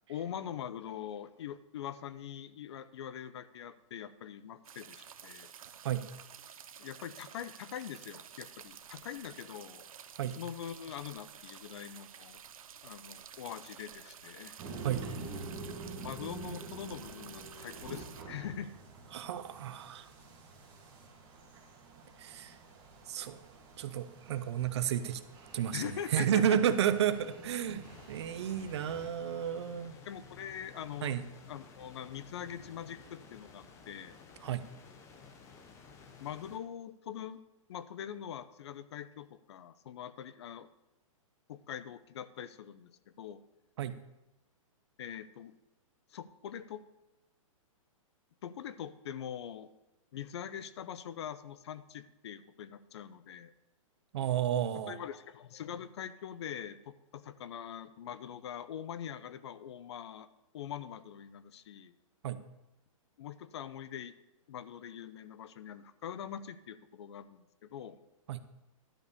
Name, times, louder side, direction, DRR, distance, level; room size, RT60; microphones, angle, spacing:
voice 1, 0.1-5.5 6.8-9.9 10.4-12.4 12.8-14.5 16.0-18.7 25.7-26.6 28.9-29.0 30.1-31.2 31.5-34.2 36.2-37.4 37.7-40.7 41.5-42.9 43.2-43.4 45.0-45.5 46.1-46.8 48.4-49.7 50.1-53.5 54.9-60.3 60.5-61.9 63.2-64.1 64.5-68.0, left 9 dB, 50° left, 15 dB, 0.6 m, -43 dB
sound 1, 4.6-18.2, right 8 dB, 80° right, 0.8 m, -51 dB
sound 2, 14.6-29.1, right 3 dB, 25° right, 2.1 m, -47 dB
voice 2, 19.1-20.1 22.2-22.6 23.1-23.4 23.8-25.2 25.5-30.0 31.0-31.2 34.4-34.6 43.8-44.0 54.1-55.0 62.2-62.4 68.3-68.4, right 9 dB, 50° right, 12 dB, 0.7 m, -32 dB
sound 3, 27.8-36.6, left 5 dB, 15° left, 0.8 m, -54 dB
12.0 x 5.3 x 6.7 m, 0.96 s
hypercardioid pair, 160°, 18 cm